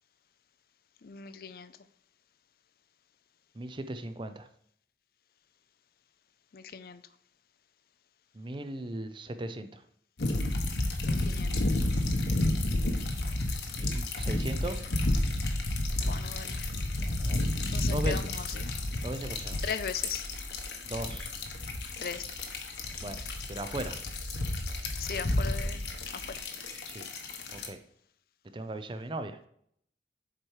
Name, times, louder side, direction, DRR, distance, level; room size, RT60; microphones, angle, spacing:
voice 1, 1.0-1.7 6.5-7.0 11.0-11.7 16.0-16.7 17.7-18.7 19.6-20.2 22.0-22.3 25.0-26.4, left 6 dB, 55° left, 13 dB, 0.5 m, -39 dB
voice 2, 3.6-4.5 8.3-9.8 13.8-14.8 17.0-17.4 17.9-18.3 19.0-19.6 20.9-21.3 23.0-23.2 23.5-24.0 26.8-27.1 27.5-27.8 28.5-29.4, right 1 dB, 30° right, 9 dB, 0.6 m, -37 dB
sound 1, 10.2-27.7, left 1 dB, 75° left, 1.2 m, -31 dB
7.5 x 4.6 x 4.7 m, 0.67 s
head